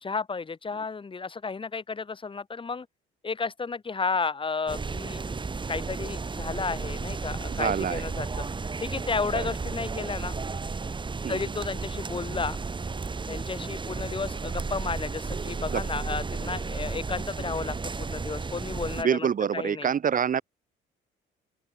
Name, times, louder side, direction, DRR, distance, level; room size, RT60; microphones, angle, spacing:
voice 1, 0.0-2.9 3.2-5.2 5.7-8.3 8.8-10.3 11.3-12.6 13.3-19.3 19.5-19.9, left 4 dB, 25° left, 2.0 m, -32 dB
sound 1, 4.7-19.0, right 4 dB, 25° right, 2.8 m, -33 dB
voice 2, 7.5-8.0 9.3-9.5 11.2-11.5 15.7-15.8 19.0-20.4, right 8 dB, 45° right, 1.7 m, -26 dB
open air
cardioid pair, 120°, 19 cm